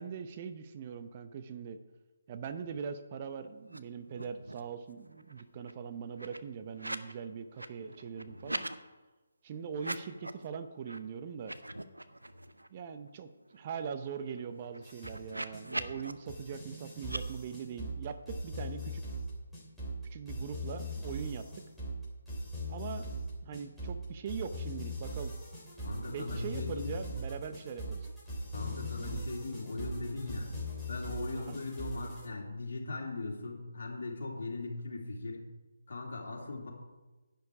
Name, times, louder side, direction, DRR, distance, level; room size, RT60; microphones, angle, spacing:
voice 1, 0.0-1.8 2.3-8.6 9.4-11.5 12.7-19.0 20.1-21.4 22.7-23.1 23.4-25.3 26.1-28.1 31.4-31.6, right 6 dB, 30° right, 9 dB, 0.7 m, -41 dB
sound 1, 3.6-3.8 4.0-4.7 5.1-7.1 7.4-8.8 9.7-10.4 10.8-11.0 11.3-12.7 13.1-13.2 13.4-16.1 17.0-17.2, right 1 dB, 85° right, 0.8 m, -42 dB
sound 2, 14.8-32.3, equal, ahead, 3.6 m, -40 dB
voice 2, 25.8-27.0 28.5-30.5 30.9-35.4 35.9-36.7, left 3 dB, 55° left, -1 dB, 3.1 m, -39 dB
11.0 x 9.4 x 4.9 m, 1.2 s
figure-of-eight pair, 145°, 0 cm